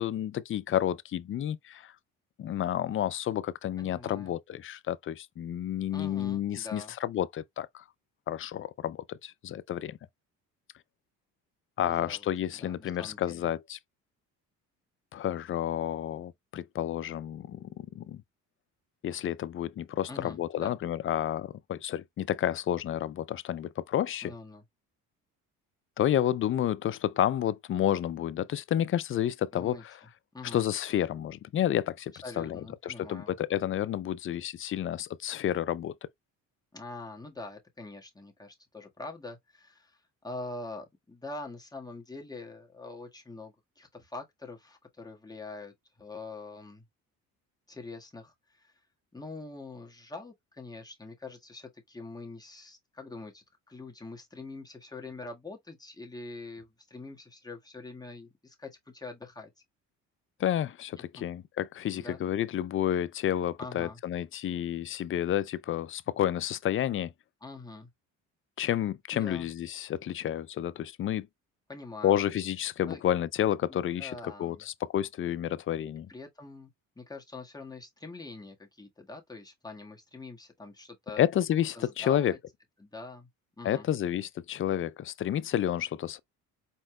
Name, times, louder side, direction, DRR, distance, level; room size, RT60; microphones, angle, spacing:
voice 1, 0.0-1.9 2.4-7.8 8.3-10.0 11.8-13.8 15.1-18.2 19.0-24.3 26.0-29.9 30.5-35.9 60.4-67.1 68.6-71.3 72.0-76.1 81.2-82.3 83.6-86.2, left 11 dB, 35° left, 0.4 m, -30 dB
voice 2, 3.8-4.3 5.9-6.9 11.8-12.3 12.5-13.5 20.1-20.7 24.2-24.6 29.5-29.8 30.3-30.6 32.2-33.3 36.7-46.8 47.7-48.7 49.1-59.5 62.0-62.2 63.6-64.0 67.4-67.9 69.1-69.5 71.7-72.2 72.9-73.0 73.7-74.6 76.1-81.2 81.7-82.4 82.8-83.3 83.6-83.9, left 3 dB, 10° left, 1.5 m, -44 dB
4.5 x 4.3 x 2.2 m
supercardioid pair, 85°, 34 cm